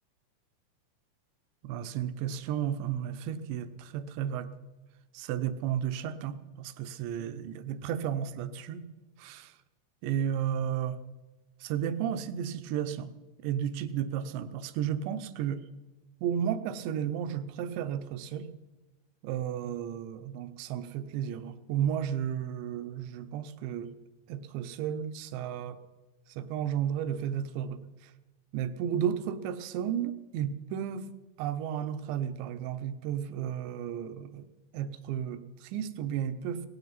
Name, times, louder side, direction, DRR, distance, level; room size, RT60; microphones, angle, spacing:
voice 1, 1.6-4.5 5.1-8.9 9.2-9.5 10.0-11.0 11.6-13.1 13.4-15.6 16.2-18.5 19.2-23.9 24.3-25.8 26.4-27.8 28.5-31.1 31.4-34.4 34.7-36.6, right 9 dB, 80° right, 11 dB, 2.8 m, -33 dB
17.0 x 15.0 x 4.0 m, 1.2 s
omnidirectional pair, 5.4 m